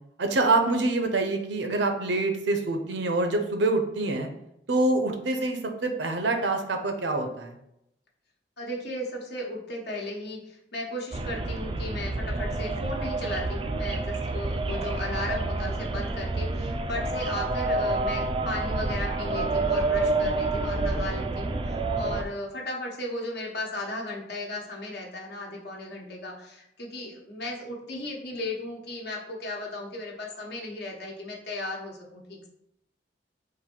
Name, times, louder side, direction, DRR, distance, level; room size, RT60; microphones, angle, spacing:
voice 1, 0.2-4.3 4.7-7.6, right 2 dB, 70° right, 5 dB, 0.7 m, -26 dB
voice 2, 8.6-32.5, left 1 dB, 65° left, -1 dB, 1.0 m, -36 dB
sound 1, 11.1-22.2, right 2 dB, 30° right, 0.3 m, -28 dB
3.9 x 2.6 x 4.4 m, 0.80 s
head